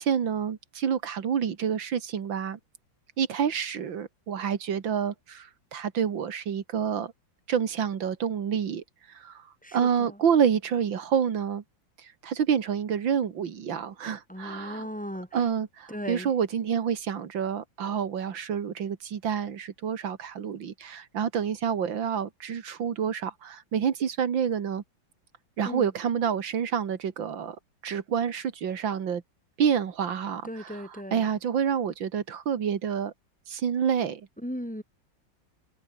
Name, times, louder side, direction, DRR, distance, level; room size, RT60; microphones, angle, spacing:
voice 1, 0.0-2.6 3.2-7.1 7.5-8.8 9.1-9.4 9.7-11.6 12.0-14.9 15.3-24.8 25.6-27.6 27.8-29.2 29.6-33.1 33.5-34.3, right 8 dB, 75° right, 2.4 m, -28 dB
voice 2, 9.6-10.2 14.3-15.3 15.9-16.3 25.7-25.9 30.4-31.3 34.4-34.8, equal, 5° left, 2.4 m, -36 dB
omnidirectional pair, 2.1 m